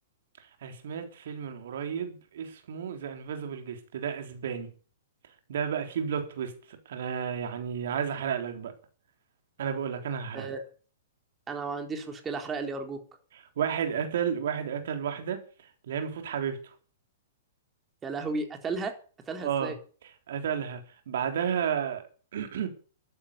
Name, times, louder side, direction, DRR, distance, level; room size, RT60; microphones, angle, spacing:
voice 1, 0.4-4.7 5.5-8.7 9.6-10.5 13.3-15.4 15.9-16.7 19.4-19.7 20.3-20.8 21.1-22.0 22.3-22.7, right 8 dB, 60° right, 3.7 m, -32 dB
voice 2, 11.5-13.0 18.0-18.9 19.3-19.8, right 4 dB, 20° right, 4.0 m, -33 dB
13.5 x 11.5 x 6.9 m
figure-of-eight pair, 110°, 0 cm